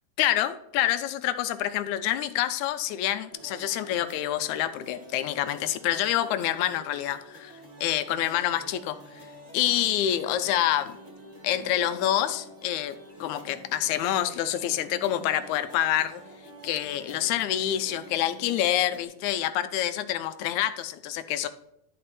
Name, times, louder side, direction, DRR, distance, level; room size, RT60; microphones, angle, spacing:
voice 1, 0.2-9.0 9.5-10.9 11.4-13.0 13.2-16.2 16.6-21.5, left 12 dB, 80° left, 12 dB, 1.8 m, -27 dB
sound 1, 3.3-19.0, equal, 85° right, 0.3 m, -48 dB
12.0 x 4.3 x 4.2 m, 0.80 s
omnidirectional pair, 3.6 m